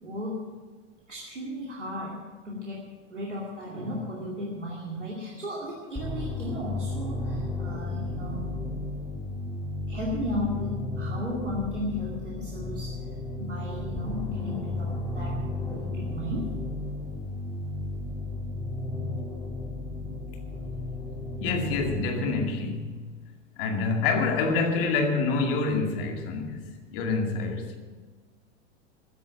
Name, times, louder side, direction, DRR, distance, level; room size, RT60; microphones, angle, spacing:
voice 1, 0.0-0.4 1.1-2.2 2.4-2.8 3.1-8.5 9.9-12.9 13.4-15.4 15.7-16.5, left 1 dB, 80° right, 2.5 m, -35 dB
sound 1, 6.0-22.0, left 2 dB, 5° left, 3.5 m, -33 dB
voice 2, 21.4-22.9 23.6-26.6 26.9-27.8, left 4 dB, 50° left, 2.3 m, -27 dB
14.5 x 10.0 x 7.2 m
figure-of-eight pair, 85°, 35 cm